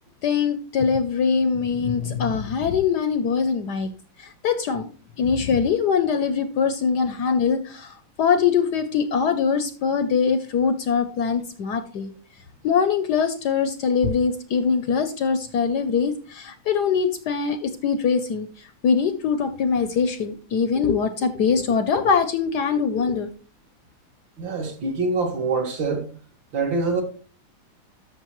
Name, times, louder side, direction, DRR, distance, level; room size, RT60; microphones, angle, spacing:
voice 1, 0.2-3.9 4.2-4.9 5.2-12.1 12.6-23.3, left 6 dB, 70° left, 1.0 m, -23 dB
voice 2, 24.4-26.1 26.5-27.0, right 3 dB, 60° right, 2.3 m, -25 dB
13.0 x 6.3 x 3.0 m
omnidirectional pair, 2.4 m